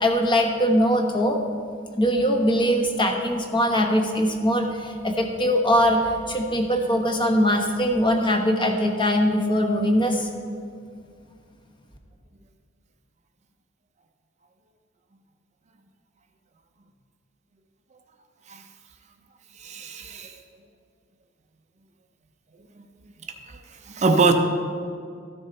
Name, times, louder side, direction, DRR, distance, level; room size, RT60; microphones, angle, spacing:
voice 1, 0.0-1.4 2.0-10.3, equal, 25° left, 2 dB, 1.0 m, -21 dB
voice 2, 19.6-20.4 23.5-23.6 23.9-24.3, right 4 dB, 35° right, 5 dB, 0.6 m, -23 dB
13.5 x 6.6 x 4.3 m, 2.2 s
head